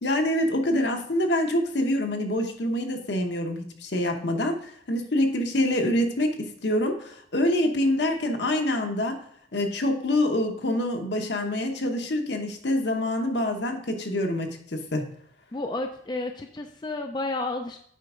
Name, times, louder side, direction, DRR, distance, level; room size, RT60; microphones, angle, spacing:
voice 1, 0.0-9.2 9.5-15.1, left 1 dB, 65° left, 4 dB, 1.0 m, -26 dB
voice 2, 15.5-17.8, left 2 dB, 25° left, 4 dB, 0.4 m, -31 dB
8.2 x 5.2 x 3.7 m, 0.64 s
head